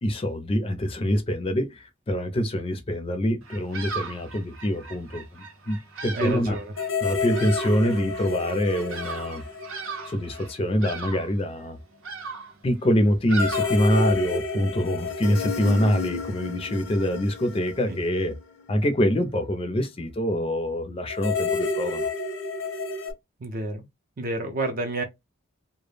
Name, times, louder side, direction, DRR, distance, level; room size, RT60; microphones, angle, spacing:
voice 1, 0.0-6.6 7.0-9.4 10.0-11.8 12.6-18.4 18.7-22.1, equal, 30° left, 0.4 m, -25 dB
Bird vocalization bird call bird song, 3.4-14.4, right 4 dB, 85° right, 0.6 m, -38 dB
voice 2, 6.1-6.7 23.4-23.9 24.2-25.0, right 2 dB, 45° right, 0.4 m, -29 dB
sound 1, 6.8-10.5 10.8-10.9 13.4-18.8 21.1-23.1, left 3 dB, 75° left, 0.6 m, -30 dB
2.1 x 2.0 x 3.2 m
head